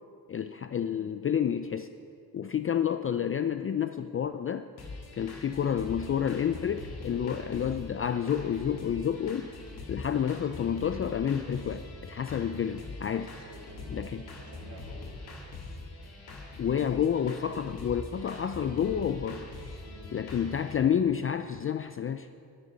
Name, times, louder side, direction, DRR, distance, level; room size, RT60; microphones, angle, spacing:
voice 1, 0.3-1.9 2.3-4.7 5.2-9.5 9.9-13.3 13.9-14.3 16.6-19.5 20.1-22.3, left 8 dB, 35° left, 10 dB, 0.4 m, -29 dB
sound 1, 4.8-20.8, left 3 dB, 75° left, 2.1 m, -43 dB
voice 2, 13.1-15.1 19.8-20.2, right 2 dB, 65° right, -2 dB, 2.7 m, -50 dB
13.0 x 9.7 x 5.5 m, 2.5 s
cardioid pair, 90°, 38 cm